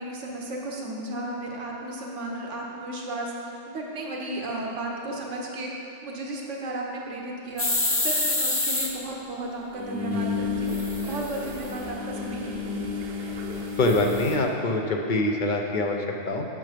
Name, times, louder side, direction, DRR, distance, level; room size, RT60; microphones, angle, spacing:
voice 1, 0.0-5.7 6.0-10.8 11.1-12.9, right 1 dB, 80° right, -1 dB, 1.4 m, -34 dB
sound 1, 7.6-8.9 10.7-11.7 13.8-14.3, left 2 dB, 20° left, 0.4 m, -27 dB
sound 2, 7.8-7.9 9.7-14.4, left 4 dB, 60° right, 1.0 m, -32 dB
voice 2, 13.8-16.4, left 2 dB, 45° left, 2 dB, 0.8 m, -24 dB
7.5 x 6.7 x 5.0 m, 2.8 s
omnidirectional pair, 1.2 m